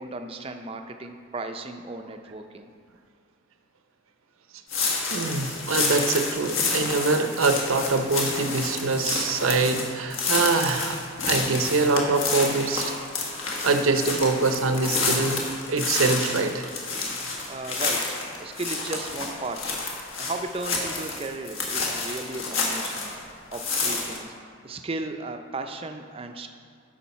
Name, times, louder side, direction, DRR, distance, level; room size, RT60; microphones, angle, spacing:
voice 1, 0.0-2.7 17.1-17.2 17.5-19.8 20.2-23.1 23.5-24.3 24.6-26.5, right 2 dB, 25° right, 6 dB, 0.4 m, -35 dB
sound 1, 4.7-23.2 23.5-24.2, left 3 dB, 65° left, 1.4 m, -29 dB
voice 2, 5.1-11.0 11.3-12.9 13.6-16.7, right 3 dB, 70° right, 6 dB, 0.6 m, -24 dB
10.0 x 6.2 x 4.1 m, 2.2 s
head